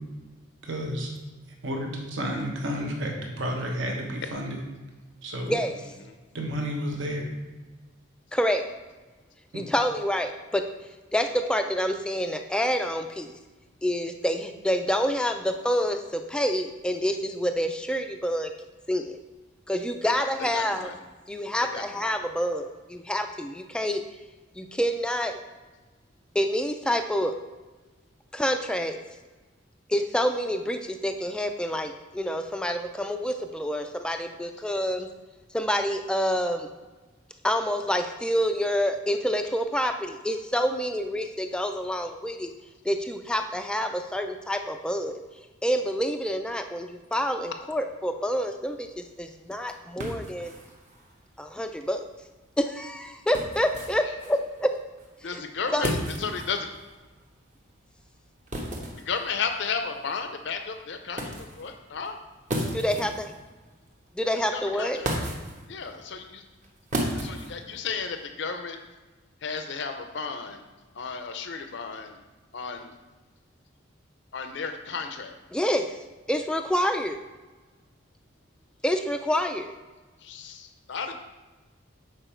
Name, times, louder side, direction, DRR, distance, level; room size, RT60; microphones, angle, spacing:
voice 1, 0.6-1.1 1.6-4.6 5.2-5.5 6.3-7.3 9.5-9.6, equal, 65° right, 1 dB, 1.1 m, -31 dB
voice 2, 8.3-8.6 9.5-10.6 11.1-13.3 13.8-18.5 18.9-19.2 19.7-20.9 21.3-24.0 24.6-25.4 26.3-27.3 28.3-29.0 29.9-35.1 35.5-36.7 37.4-42.5 42.8-45.2 45.6-50.5 51.4-52.0 52.6-54.7 55.2-55.4 55.7-55.9 62.7-63.3 64.2-65.0 75.5-76.0 76.3-77.2 78.8-79.7, equal, 5° left, 6 dB, 0.3 m, -27 dB
voice 3, 20.0-20.9 21.6-22.1 54.0-54.1 55.2-56.7 59.1-62.2 64.4-65.1 65.7-66.4 67.1-68.8 69.4-70.7 70.9-72.2 72.5-72.9 74.3-75.4 80.2-81.1, left 5 dB, 60° left, 6 dB, 0.5 m, -34 dB
sound 1, 48.6-68.2, right 1 dB, 35° right, 1.0 m, -37 dB
6.9 x 4.6 x 4.4 m, 1.3 s
head